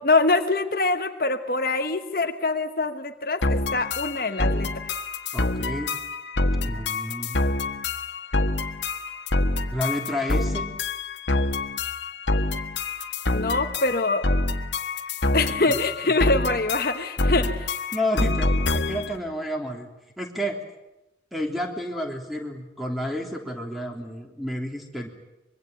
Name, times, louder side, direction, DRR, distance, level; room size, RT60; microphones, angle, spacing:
voice 1, 0.0-4.7 13.3-14.2 15.3-17.7, left 3 dB, 50° left, 7 dB, 1.2 m, -24 dB
sound 1, 3.4-19.2, left 2 dB, 85° left, 1.6 m, -26 dB
voice 2, 5.3-5.9 6.6-7.4 9.7-10.7 16.0-16.1 17.9-18.5 18.7-19.9 20.2-20.6 21.3-25.1, equal, ahead, 2 dB, 3.3 m, -30 dB
25.0 x 23.0 x 9.1 m, 0.93 s
head